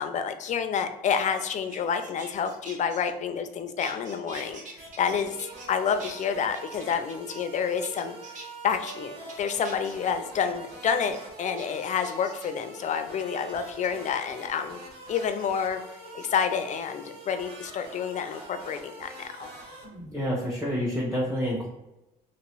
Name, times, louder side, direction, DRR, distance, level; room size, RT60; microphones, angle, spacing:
voice 1, 0.0-5.4 5.7-8.2 8.6-14.8 15.1-15.8 16.1-19.5, left 7 dB, 45° left, 8 dB, 0.5 m, -29 dB
sound 1, 0.8-3.5 3.8-5.7 6.0-7.5 7.8-8.5 8.9-9.0 9.3-10.0 10.4-10.7 11.1-11.2 11.6-12.6 13.5-13.9 15.1-15.5 16.1-16.3 16.9-17.4 18.9-20.0 20.3-20.7, right 2 dB, 50° right, 0.9 m, -47 dB
sound 2, 4.3-4.5 4.8-19.9, right 2 dB, 80° right, 1.1 m, -44 dB
voice 2, 19.8-21.7, equal, 15° right, -7 dB, 1.1 m, -29 dB
3.0 x 2.9 x 4.5 m, 0.93 s
cardioid pair, 110°, 17 cm